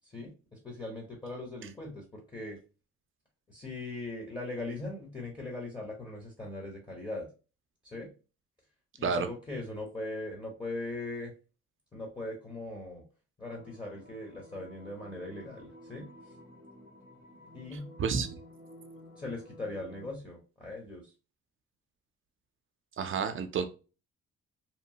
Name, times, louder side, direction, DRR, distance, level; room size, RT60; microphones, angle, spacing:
voice 1, 0.1-2.6 3.5-7.3 7.8-8.1 9.0-11.3 11.9-13.0 13.4-16.1 17.5-17.9 19.2-21.0, left 2 dB, 15° left, -1 dB, 0.8 m, -40 dB
sound 1, 13.5-20.1, equal, 85° left, 1.5 m, -52 dB
voice 2, 17.7-18.4 23.0-23.7, right 5 dB, 45° right, 8 dB, 0.4 m, -31 dB
2.9 x 2.0 x 2.7 m, 0.33 s
cardioid pair, 90°, 30 cm